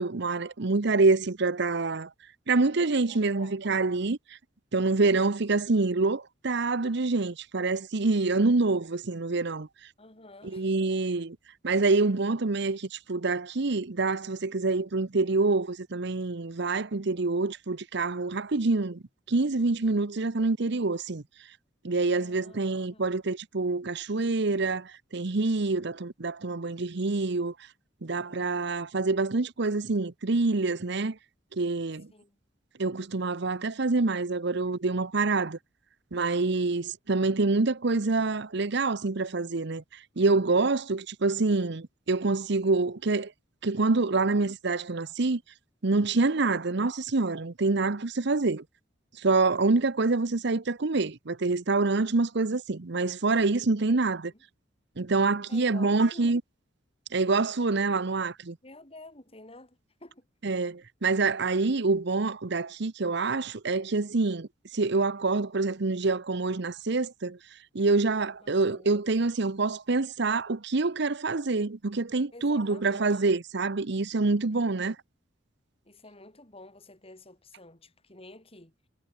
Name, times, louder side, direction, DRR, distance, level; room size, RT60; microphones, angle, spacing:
voice 1, 0.0-2.1 2.5-4.2 4.7-9.7 10.5-11.4 11.6-19.0 19.3-21.2 21.8-27.5 28.0-31.2 31.5-32.1 32.8-35.6 36.1-39.8 40.2-43.3 43.6-45.4 45.8-48.6 49.2-54.2 55.0-56.4 57.1-58.6 60.4-67.4 67.7-74.9, right 3 dB, 65° right, 0.9 m, -26 dB
voice 2, 3.1-3.6 10.0-10.7 22.1-23.1 28.1-28.7 32.1-32.4 46.2-46.6 53.9-54.4 55.5-56.4 58.6-60.3 68.4-68.9 72.3-73.2 74.5-74.9 75.8-78.7, left 2 dB, 30° left, 7.8 m, -51 dB
head